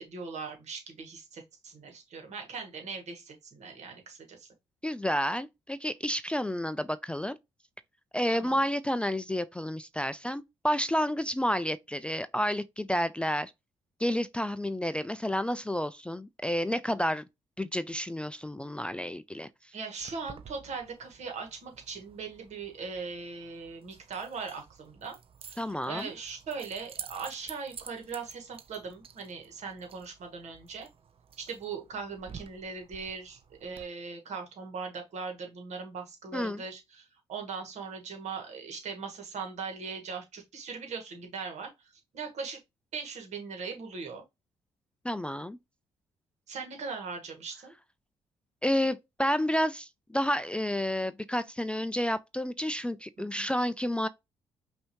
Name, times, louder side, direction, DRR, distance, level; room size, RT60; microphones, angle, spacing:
voice 1, 0.0-4.5 8.3-8.6 19.7-25.2 25.4-30.9 31.4-42.6 42.9-44.2 46.5-47.7 53.2-53.5, right 5 dB, 65° right, 1.6 m, -40 dB
voice 2, 4.8-7.4 8.1-13.5 14.0-17.2 17.6-19.5 25.6-26.1 36.3-36.6 45.0-45.6 48.6-54.1, equal, 10° left, 0.3 m, -30 dB
Keys jangling, 20.0-33.8, right 7 dB, 45° right, 0.6 m, -50 dB
5.4 x 2.7 x 2.9 m
supercardioid pair, 55°, 13 cm